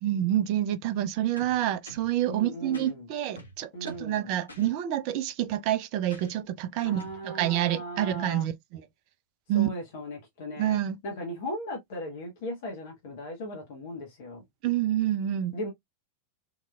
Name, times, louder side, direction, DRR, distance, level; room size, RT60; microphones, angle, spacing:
voice 1, 0.0-8.8 9.5-9.7 10.6-11.0 14.6-15.5, right 12 dB, 45° right, 0.5 m, -28 dB
sound 1, 1.4-2.2 2.7-2.9 3.4-4.1 4.5-4.7 6.1-6.4 7.0-7.2, equal, 80° left, 0.8 m, -47 dB
voice 2, 2.3-3.1 3.7-4.3 6.8-8.5 9.5-14.4 15.5-15.7, left 1 dB, 50° left, 1.1 m, -37 dB
3.8 x 2.8 x 2.3 m
figure-of-eight pair, 90°, 0 cm